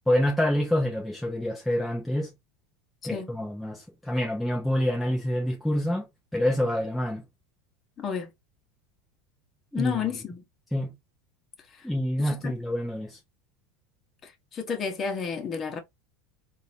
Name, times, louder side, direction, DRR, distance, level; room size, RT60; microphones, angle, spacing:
voice 1, 0.1-2.3 3.0-6.1 6.3-7.2 9.7-10.0 10.7-10.9 11.8-13.2, left 1 dB, 5° left, 0.9 m, -27 dB
voice 2, 8.0-8.3 9.7-10.4 11.7-11.9 12.2-12.5 14.2-15.8, left 6 dB, 30° left, 1.2 m, -31 dB
3.8 x 2.7 x 2.9 m
supercardioid pair, 120°, 0 cm